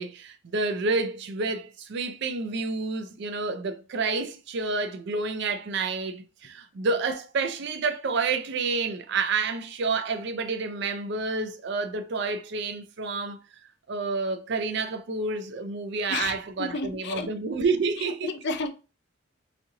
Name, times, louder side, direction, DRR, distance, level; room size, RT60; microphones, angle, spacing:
voice 1, 0.0-13.4 13.9-18.3, right 4 dB, 55° right, 0.4 m, -29 dB
voice 2, 16.6-17.3 18.1-18.7, left 3 dB, 55° left, 0.5 m, -31 dB
4.0 x 2.8 x 2.7 m
head